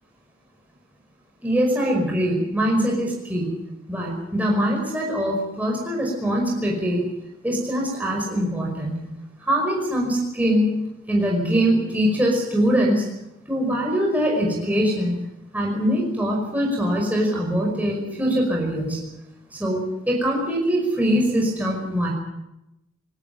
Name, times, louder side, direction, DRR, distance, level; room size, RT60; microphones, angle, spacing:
voice 1, 1.4-3.6 3.9-7.0 7.4-9.1 9.4-13.1 13.5-15.2 15.5-19.0 19.5-22.1, equal, 10° right, -2 dB, 5.2 m, -23 dB
21.5 x 17.0 x 9.4 m, 0.91 s
head